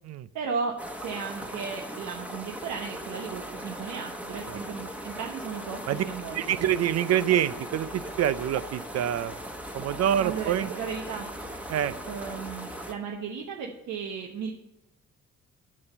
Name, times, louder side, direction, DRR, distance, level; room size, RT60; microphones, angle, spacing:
voice 1, 0.3-6.7 10.2-11.3 12.1-14.5, right 5 dB, 80° right, 1 dB, 1.0 m, -35 dB
sound 1, 0.8-12.9, right 1 dB, 5° right, 1.1 m, -39 dB
voice 2, 6.3-9.3 9.7-10.7 11.7-11.9, right 11 dB, 60° right, 16 dB, 0.4 m, -26 dB
7.5 x 6.1 x 6.8 m, 0.91 s
cardioid pair, 90°, 30 cm